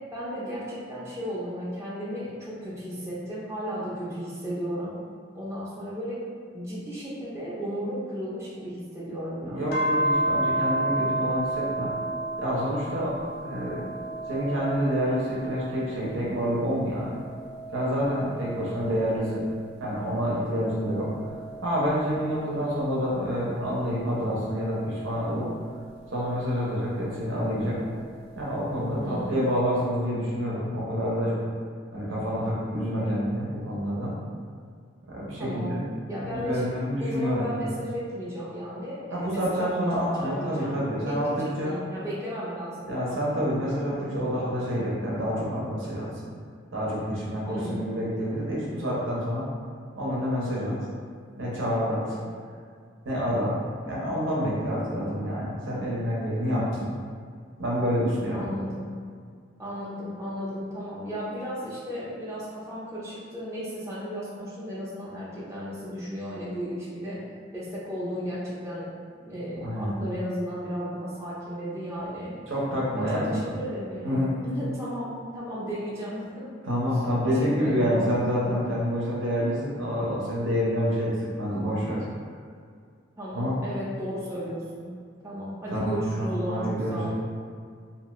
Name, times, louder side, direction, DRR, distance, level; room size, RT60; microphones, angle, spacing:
voice 1, 0.1-5.0 5.3-6.2 6.5-9.8 29.0-29.4 35.4-35.7 36.1-36.7 37.0-40.8 41.1-42.9 47.5-47.9 58.3-58.9 59.6-67.2 67.5-68.9 69.2-72.4 72.9-76.7 77.2-78.1 83.2-84.9 85.2-87.1, equal, 15° right, -8 dB, 0.5 m, -34 dB
voice 2, 9.4-11.9 12.4-13.1 13.4-13.9 14.3-17.2 17.7-19.4 19.8-21.1 21.6-25.5 26.1-27.8 28.4-31.4 31.9-34.1 35.1-35.8 36.2-37.5 39.1-41.8 42.9-46.1 46.7-49.5 50.0-50.8 51.4-52.2 53.0-53.6 53.8-56.9 57.6-58.5 69.6-70.0 72.5-73.4 74.0-74.4 76.6-82.0 83.3-83.5 85.7-87.1, equal, 90° right, -6 dB, 0.7 m, -28 dB
sound 1, 9.7-16.4 16.9-19.8 20.4-23.1 23.9-26.3 27.7-28.8, right 1 dB, 55° left, 0.4 m, -33 dB
2.6 x 2.3 x 3.0 m, 2.1 s
head